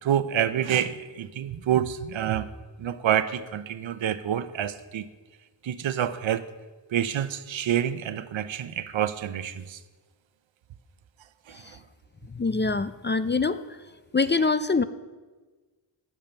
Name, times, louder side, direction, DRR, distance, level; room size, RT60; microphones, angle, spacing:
voice 1, 0.0-2.5 2.8-5.0 5.6-6.5 6.9-9.8 11.5-11.8, right 10 dB, 80° right, 13 dB, 0.8 m, -27 dB
voice 2, 12.3-13.6 14.1-14.8, left 4 dB, 25° left, 12 dB, 0.4 m, -24 dB
12.0 x 7.5 x 8.9 m, 1.3 s
wide cardioid pair, 115°, 46 cm